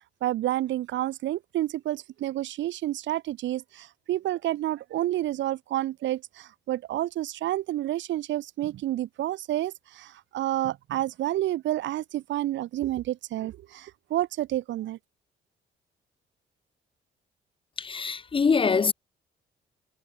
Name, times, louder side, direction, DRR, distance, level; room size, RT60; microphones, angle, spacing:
voice 1, 0.2-15.0, right 14 dB, 70° right, 0.5 m, -29 dB
voice 2, 17.8-18.9, left 5 dB, 25° left, 0.5 m, -24 dB
cardioid pair, 90°, 20 cm